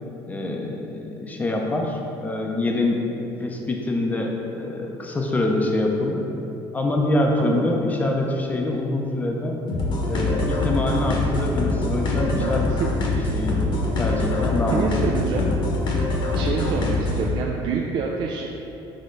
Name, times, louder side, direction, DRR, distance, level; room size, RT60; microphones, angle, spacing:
voice 1, 0.3-3.1 3.4-6.2 6.7-9.6 10.1-12.7 13.3-13.6 14.0-14.9, left 2 dB, 15° left, 1 dB, 0.7 m, -25 dB
voice 2, 7.4-7.7 12.3-12.5 12.8-12.9 14.7-15.5 16.3-18.5, right 5 dB, 50° right, -1 dB, 0.5 m, -27 dB
sound 1, 9.7-17.3, left 2 dB, 50° left, 1.2 m, -24 dB
6.5 x 3.7 x 5.2 m, 2.9 s
cardioid pair, 140°, 10 cm